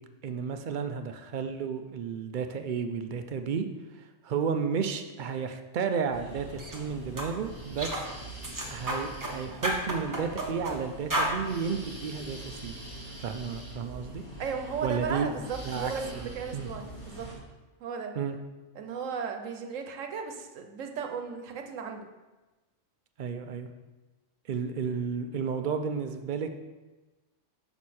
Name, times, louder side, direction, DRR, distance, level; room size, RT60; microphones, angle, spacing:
voice 1, 0.2-3.7 4.0-8.1 8.7-12.8 13.2-14.2 14.8-15.3 15.6-16.7 18.2-18.4 23.2-23.7 24.5-26.5, right 6 dB, 60° right, 7 dB, 0.5 m, -32 dB
sound 1, 6.1-17.3, right 1 dB, 25° left, 1.5 m, -43 dB
sound 2, 6.6-6.8 7.2-7.3 7.8-8.1 8.4-9.3 9.6-10.8 11.1-11.3, right 1 dB, 15° right, 0.9 m, -31 dB
voice 2, 14.4-17.3 17.8-18.1 18.8-22.1, right 6 dB, 90° right, 5 dB, 1.1 m, -35 dB
6.3 x 6.0 x 4.2 m, 1.2 s
omnidirectional pair, 1.3 m